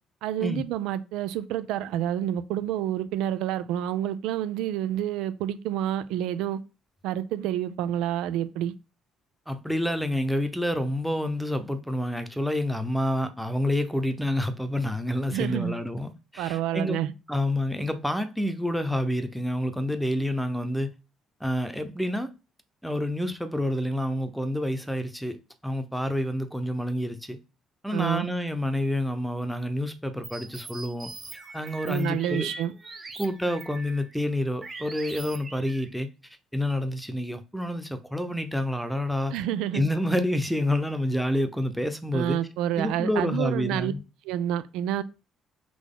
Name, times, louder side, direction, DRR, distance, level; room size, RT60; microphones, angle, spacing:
voice 1, 0.2-6.6 7.0-8.7 15.3-15.7 16.4-17.1 27.9-28.3 31.9-32.7 39.3-39.8 42.1-43.9 44.2-45.0, right 11 dB, 75° right, 0.3 m, -28 dB
voice 2, 9.5-17.0 17.3-20.9 21.4-22.3 22.8-25.4 25.6-27.4 27.8-31.1 31.5-32.5 33.2-36.1 36.5-39.3 39.7-42.4 42.8-44.0, left 1 dB, ahead, 0.8 m, -28 dB
sound 1, 30.2-34.2 34.6-35.9, right 3 dB, 30° right, 1.1 m, -42 dB
4.0 x 2.9 x 3.7 m
hypercardioid pair, 55°, 0 cm